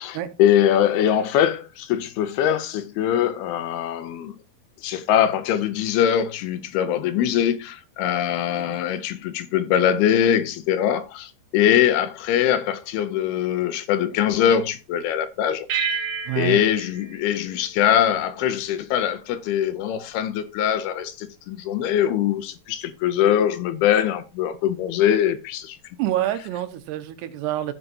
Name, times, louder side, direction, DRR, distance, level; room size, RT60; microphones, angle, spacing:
voice 1, 0.0-4.4 4.8-15.7 16.0-16.1 16.4-25.8, left 10 dB, 80° left, 2.5 m, -22 dB
voice 2, 8.5-8.8 16.3-16.6 26.0-27.7, right 13 dB, 80° right, 2.9 m, -27 dB
sound 1, 15.7-18.5, right 6 dB, 65° right, 2.3 m, -31 dB
14.5 x 5.5 x 2.7 m
omnidirectional pair, 4.7 m